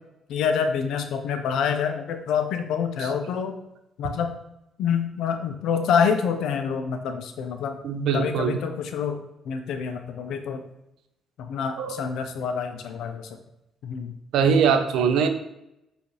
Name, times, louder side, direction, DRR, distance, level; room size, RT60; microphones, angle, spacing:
voice 1, 0.3-3.6 4.0-4.3 4.8-7.8 8.1-9.2 9.5-10.6 11.4-13.4 13.8-14.1, left 7 dB, 80° left, 7 dB, 0.4 m, -27 dB
voice 2, 7.8-8.6 11.8-12.1 14.3-15.3, right 6 dB, 85° right, 7 dB, 0.4 m, -22 dB
4.8 x 2.4 x 3.2 m, 0.86 s
cardioid pair, 90°, 0 cm